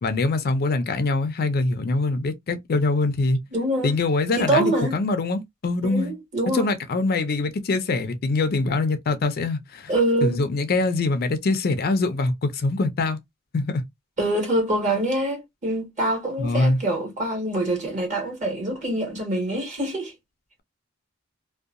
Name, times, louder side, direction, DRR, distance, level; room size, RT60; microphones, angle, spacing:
voice 1, 0.0-3.4 3.8-6.1 6.5-9.9 10.2-13.2 13.5-13.8 16.4-16.8, left 3 dB, 50° left, 0.4 m, -23 dB
voice 2, 3.5-3.9 4.3-4.9 5.8-6.7 9.9-10.5 14.2-20.1, right 1 dB, 35° right, 1.5 m, -25 dB
2.7 x 2.2 x 2.4 m
head